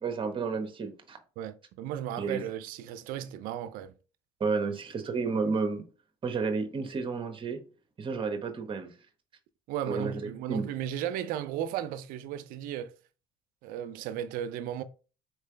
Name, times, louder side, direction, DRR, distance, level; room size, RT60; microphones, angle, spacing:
voice 1, 0.0-1.2 2.2-2.4 4.4-5.8 6.2-7.6 8.0-8.9 9.9-10.7, right 4 dB, 35° right, 1.2 m, -31 dB
voice 2, 1.4-3.9 9.7-12.9 13.6-14.8, right 10 dB, 70° right, 0.6 m, -35 dB
4.5 x 3.2 x 3.3 m
supercardioid pair, 85°, 15 cm